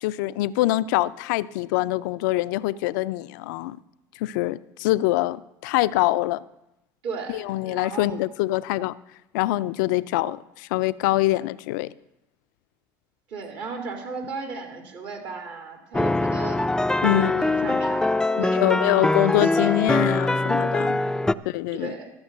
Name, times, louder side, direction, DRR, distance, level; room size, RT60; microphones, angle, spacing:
voice 1, 0.0-3.8 4.2-6.4 7.3-8.9 9.3-11.9 17.0-17.8 18.4-21.0 21.5-21.9, left 16 dB, 80° left, 0.4 m, -24 dB
voice 2, 7.0-8.2 13.3-16.6 17.1-19.8 21.0-21.3 21.7-22.1, right 4 dB, 65° right, 2.6 m, -36 dB
sound 1, 15.9-21.3, left 2 dB, 5° left, 0.4 m, -23 dB
13.5 x 7.2 x 6.6 m
supercardioid pair, 90°, 10 cm